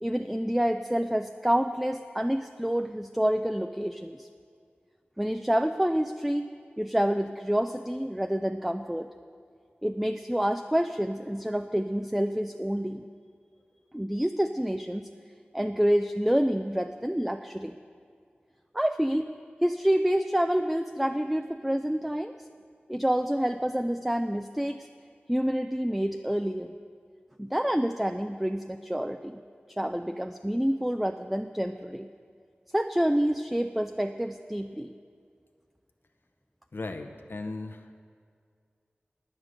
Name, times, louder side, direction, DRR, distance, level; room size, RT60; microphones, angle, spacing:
voice 1, 0.0-4.3 5.2-6.5 6.8-9.1 9.8-13.0 13.9-15.1 15.5-17.7 18.7-19.3 19.6-22.3 22.9-24.9 25.3-26.7 27.4-29.4 29.7-32.1 32.7-34.9, equal, 5° right, 7 dB, 0.4 m, -28 dB
voice 2, 36.7-38.0, left 3 dB, 65° left, 4 dB, 0.7 m, -37 dB
9.6 x 8.9 x 6.3 m, 2.2 s
wide cardioid pair, 45°, 4 cm